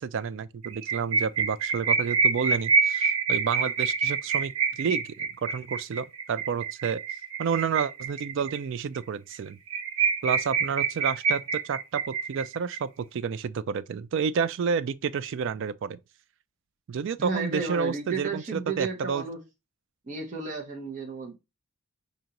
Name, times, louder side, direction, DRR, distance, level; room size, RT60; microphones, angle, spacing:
voice 1, 0.0-7.0 7.4-9.6 10.2-16.0 16.9-19.2, right 6 dB, 60° right, 0.3 m, -30 dB
sound 1, 0.6-8.6 8.9-9.0 9.3-9.4 9.7-12.8, right 5 dB, 80° right, 0.8 m, -26 dB
voice 2, 17.2-19.4 20.0-21.4, right 4 dB, 35° right, 1.1 m, -32 dB
5.1 x 2.7 x 2.9 m
head